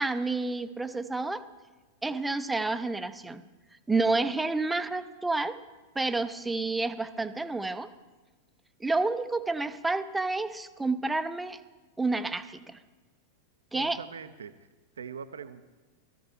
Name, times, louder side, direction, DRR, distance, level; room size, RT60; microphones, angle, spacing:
voice 1, 0.0-1.4 2.0-3.5 3.9-5.6 6.0-7.9 8.8-11.6 12.0-12.8 13.7-14.0, right 3 dB, 10° right, 11 dB, 0.6 m, -29 dB
voice 2, 13.7-14.6 15.0-15.6, right 6 dB, 70° right, 12 dB, 0.6 m, -42 dB
16.5 x 14.0 x 2.8 m, 1.2 s
figure-of-eight pair, 90°, 0 cm